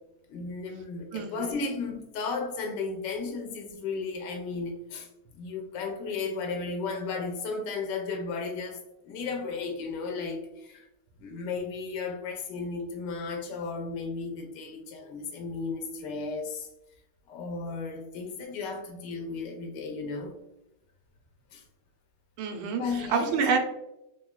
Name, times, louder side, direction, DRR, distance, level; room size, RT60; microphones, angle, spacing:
voice 1, 0.3-5.1 5.3-8.8 9.1-10.9 11.2-16.7 17.3-20.4 21.5-21.6 22.8-23.6, left 4 dB, 75° left, 2 dB, 1.1 m, -34 dB
voice 2, 1.1-1.5 22.4-23.6, right 6 dB, 85° right, 4 dB, 1.5 m, -28 dB
3.9 x 3.0 x 2.2 m, 0.90 s
omnidirectional pair, 2.3 m